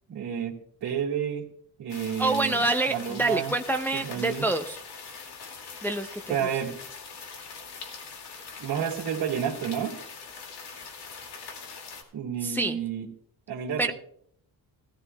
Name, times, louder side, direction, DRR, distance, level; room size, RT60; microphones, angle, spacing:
voice 1, 0.1-1.4 1.8-3.5 3.9-4.5 6.3-6.8 8.6-10.0 12.1-13.1 13.5-13.9, right 8 dB, 70° right, -4 dB, 2.0 m, -30 dB
sound 1, 1.9-12.0, left 5 dB, 85° left, 2.2 m, -42 dB
voice 2, 2.2-4.8 5.8-6.4 12.4-12.8 13.8-13.9, right 2 dB, 5° left, 5 dB, 0.4 m, -27 dB
16.5 x 14.0 x 2.2 m, 0.64 s
cardioid pair, 150°, 40 cm